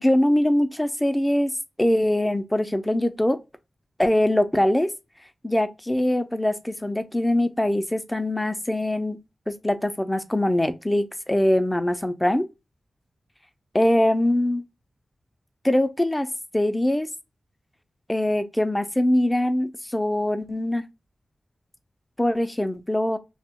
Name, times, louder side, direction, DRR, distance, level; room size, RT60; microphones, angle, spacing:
voice 1, 0.0-1.5 1.8-3.4 4.0-4.9 5.4-9.2 9.5-12.5 13.7-14.6 15.6-16.3 16.5-17.1 18.1-20.8 22.2-23.2, left 1 dB, 10° left, 0.4 m, -22 dB
2.7 x 2.1 x 3.5 m
wide cardioid pair, 130°, 0 cm